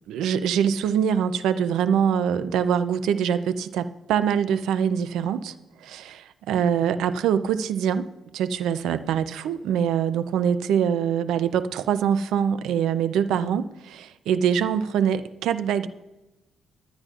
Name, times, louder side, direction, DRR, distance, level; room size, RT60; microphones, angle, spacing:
voice 1, 0.1-5.5 5.8-15.9, right 8 dB, 90° right, 0.5 m, -24 dB
20.0 x 9.8 x 2.5 m
cardioid pair, 175°, 0 cm